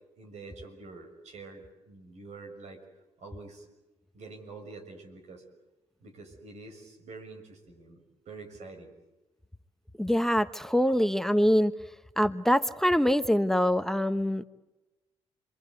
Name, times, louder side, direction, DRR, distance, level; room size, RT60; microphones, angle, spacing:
voice 1, 0.2-2.8 3.2-3.6 4.1-5.4 6.0-8.9, right 3 dB, 70° right, 6 dB, 6.4 m, -46 dB
voice 2, 10.0-11.7 12.2-14.4, equal, 5° left, 12 dB, 1.1 m, -24 dB
29.0 x 23.0 x 8.3 m, 1.0 s
supercardioid pair, 60°, 12 cm